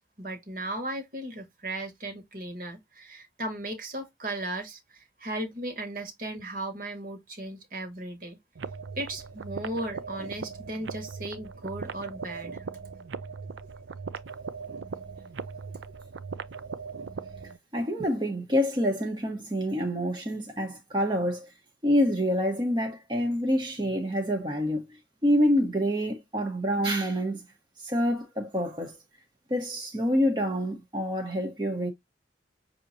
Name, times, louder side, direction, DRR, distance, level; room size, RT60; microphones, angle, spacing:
voice 1, 0.2-8.4 9.0-12.6, right 1 dB, 50° right, 1.6 m, -36 dB
sound 1, 8.6-17.6, right 5 dB, 85° right, 0.5 m, -39 dB
voice 2, 17.7-21.5 21.8-24.8 25.2-27.5 27.8-29.0 29.5-31.9, equal, 25° right, 1.0 m, -27 dB
6.6 x 2.9 x 2.7 m
head